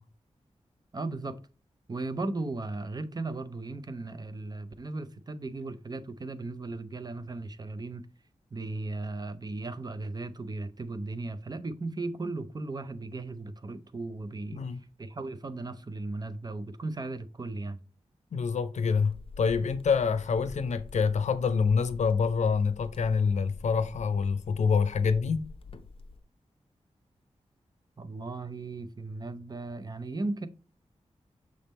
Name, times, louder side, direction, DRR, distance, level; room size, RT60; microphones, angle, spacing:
voice 1, 0.9-1.4 1.9-8.1 8.5-14.6 15.0-17.8 28.0-30.5, right 2 dB, 35° right, 0.6 m, -36 dB
voice 2, 18.3-25.5, left 5 dB, 85° left, 0.6 m, -26 dB
sound 1, 18.9-26.2, left 4 dB, 50° left, 0.8 m, -47 dB
6.4 x 3.5 x 4.2 m
wide cardioid pair, 85°, 12 cm